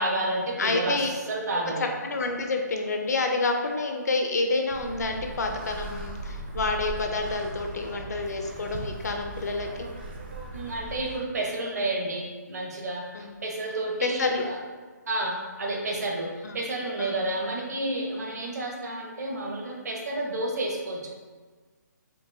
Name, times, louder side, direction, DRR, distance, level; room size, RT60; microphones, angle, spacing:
voice 1, 0.0-1.0 1.3-1.8 10.5-13.0 13.4-14.6 15.1-16.3 16.5-21.1, right 2 dB, 60° right, -1 dB, 1.0 m, -30 dB
voice 2, 0.6-1.1 1.8-9.9 13.1-13.3 14.0-14.4 16.4-16.6 17.0-17.1 18.3-18.4, left 3 dB, 60° left, 4 dB, 0.5 m, -28 dB
sound 1, 4.7-11.2, right 2 dB, 30° right, 0.5 m, -39 dB
4.5 x 2.9 x 2.6 m, 1.4 s
hypercardioid pair, 170°, 10 cm